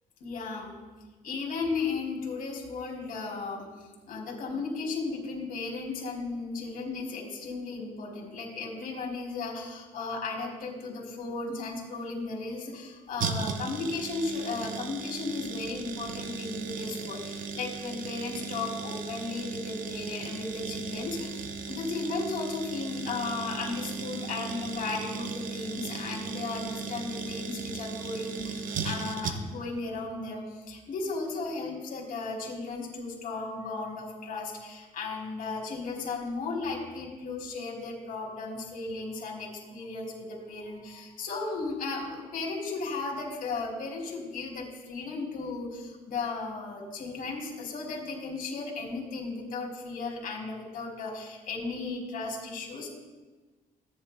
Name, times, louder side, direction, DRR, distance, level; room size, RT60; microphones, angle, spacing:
voice 1, 0.2-0.8 1.2-3.7 4.1-52.9, left 3 dB, 70° left, -1 dB, 2.6 m, -35 dB
sound 1, 13.2-29.7 30.0-30.1, right 5 dB, 60° right, 0.9 m, -37 dB
16.5 x 10.5 x 2.2 m, 1.3 s
cardioid pair, 165°, 15 cm